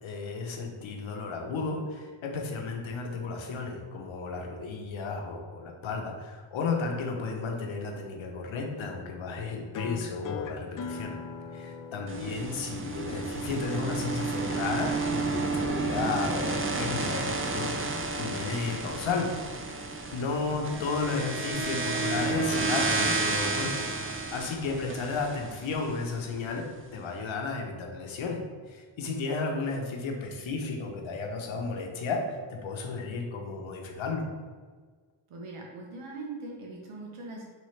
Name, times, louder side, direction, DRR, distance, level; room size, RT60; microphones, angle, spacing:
voice 1, 0.0-11.2 11.5-19.3 19.6-23.9 24.3-26.6 26.9-28.4 28.7-34.2, left 4 dB, 70° left, 2 dB, 0.8 m, -33 dB
sound 1, 9.7-14.7, left 5 dB, 45° left, 0.4 m, -40 dB
sound 2, 12.1-26.3, right 3 dB, 25° right, 0.5 m, -31 dB
voice 2, 35.3-37.4, right 3 dB, 80° right, -1 dB, 1.1 m, -41 dB
4.2 x 3.1 x 3.2 m, 1.5 s
cardioid pair, 65°, 48 cm